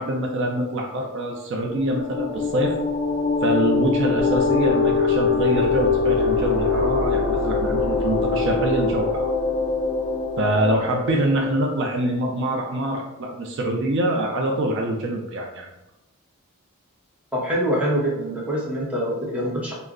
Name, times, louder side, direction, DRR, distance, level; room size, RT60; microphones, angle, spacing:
voice 1, 0.0-2.8 3.4-9.3 10.4-15.7, right 1 dB, 55° right, 1 dB, 0.4 m, -24 dB
sound 1, 1.7-11.9, left 4 dB, 35° left, 0.5 m, -23 dB
voice 2, 17.3-19.7, equal, 5° right, -6 dB, 0.7 m, -24 dB
2.3 x 2.0 x 3.4 m, 0.96 s
head